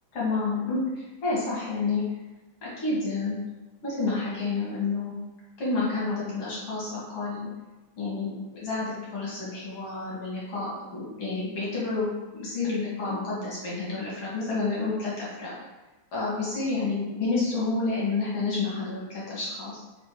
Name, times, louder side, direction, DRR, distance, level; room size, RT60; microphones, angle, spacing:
voice 1, 0.1-2.0 2.6-3.4 3.8-5.1 5.6-7.5 8.0-12.1 12.3-15.5 16.1-19.8, left 3 dB, 50° left, -7 dB, 2.3 m, -29 dB
5.1 x 4.1 x 4.6 m, 1.1 s
omnidirectional pair, 3.9 m